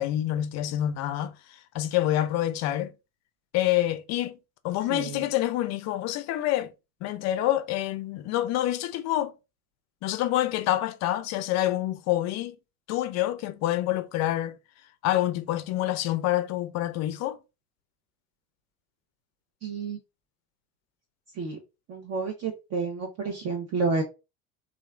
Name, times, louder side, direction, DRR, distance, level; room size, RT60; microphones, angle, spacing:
voice 1, 0.0-1.3 1.7-2.9 3.5-4.4 4.6-6.7 7.0-9.3 10.0-12.5 12.9-14.6 15.0-17.4, left 13 dB, 40° left, 0.5 m, -27 dB
voice 2, 4.9-5.2 19.6-20.0 21.3-21.6 21.9-24.0, right 4 dB, 35° right, 0.7 m, -30 dB
2.9 x 2.4 x 2.3 m
hypercardioid pair, 75°, 44 cm